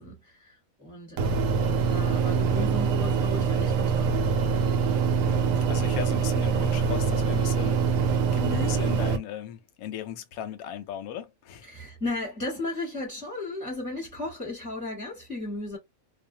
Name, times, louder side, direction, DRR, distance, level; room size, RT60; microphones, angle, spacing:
voice 1, 0.0-4.3 11.6-15.8, left 2 dB, 5° right, 1.0 m, -35 dB
sound 1, 1.2-9.2, right 5 dB, 75° right, 1.0 m, -24 dB
voice 2, 5.3-11.7, left 9 dB, 90° left, 1.0 m, -37 dB
2.6 x 2.1 x 2.7 m
omnidirectional pair, 1.5 m